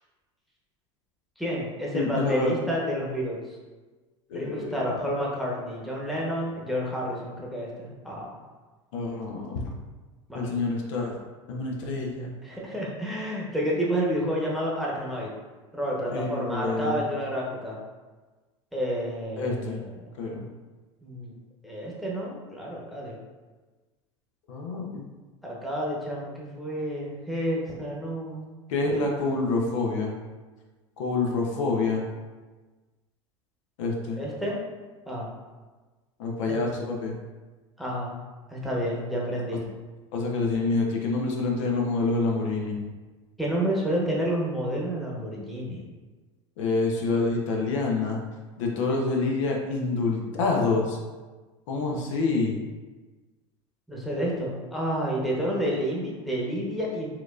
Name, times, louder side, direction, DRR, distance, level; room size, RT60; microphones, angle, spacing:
voice 1, 1.4-3.4 4.3-8.4 10.3-10.4 12.4-15.3 15.7-17.8 18.7-20.0 21.0-21.3 21.6-23.2 25.4-28.4 34.2-34.6 35.1-35.3 36.5-36.6 37.8-38.2 38.5-39.6 43.4-45.9 53.9-57.1, equal, ahead, -5 dB, 0.9 m, -30 dB
voice 2, 1.9-2.5 4.3-4.8 8.9-9.7 10.3-11.1 11.5-12.3 16.1-17.0 19.4-19.8 20.2-20.4 24.5-25.0 28.7-30.1 31.0-32.0 33.8-34.2 36.2-37.2 40.1-42.8 46.6-48.2 48.6-51.0 51.7-52.6, left 3 dB, 75° left, 0 dB, 0.6 m, -27 dB
4.4 x 2.4 x 2.4 m, 1.3 s
hypercardioid pair, 90°, 16 cm